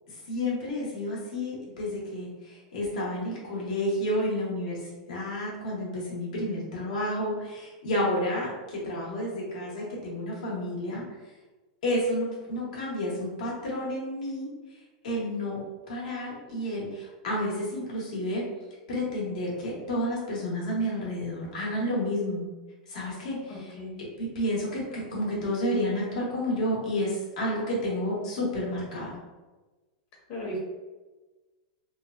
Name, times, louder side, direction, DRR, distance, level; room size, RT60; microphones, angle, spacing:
voice 1, 0.1-11.0 11.8-14.5 15.0-15.6 15.9-18.4 18.9-22.4 22.9-23.7 24.2-29.2, left 1 dB, 75° left, -4 dB, 1.2 m, -30 dB
voice 2, 23.5-24.0 30.3-30.6, equal, 40° left, -2 dB, 0.9 m, -36 dB
3.1 x 2.1 x 2.5 m, 1.2 s
supercardioid pair, 155°, 4 cm